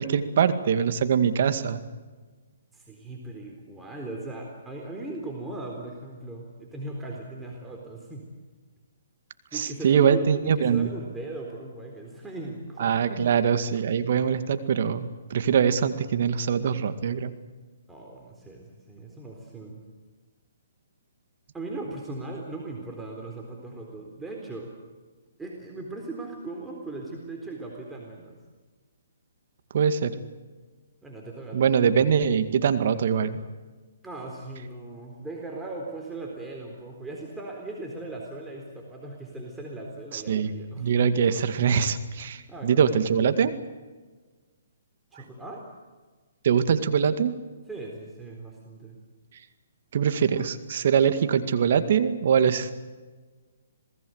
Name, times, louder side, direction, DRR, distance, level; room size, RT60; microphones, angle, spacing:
voice 1, 0.0-1.8 9.5-10.9 12.8-17.3 29.7-30.2 31.5-33.4 40.1-40.5 40.8-43.5 46.4-47.4 49.9-52.7, right 7 dB, 55° right, 11 dB, 2.0 m, -23 dB
voice 2, 2.7-8.3 9.5-13.2 17.9-19.8 21.5-24.7 25.4-28.4 31.0-31.9 34.0-40.9 42.5-43.0 45.1-45.6 47.7-49.0, right 2 dB, 10° right, -1 dB, 4.0 m, -38 dB
27.0 x 19.5 x 8.0 m, 1.3 s
hypercardioid pair, 140°, 0 cm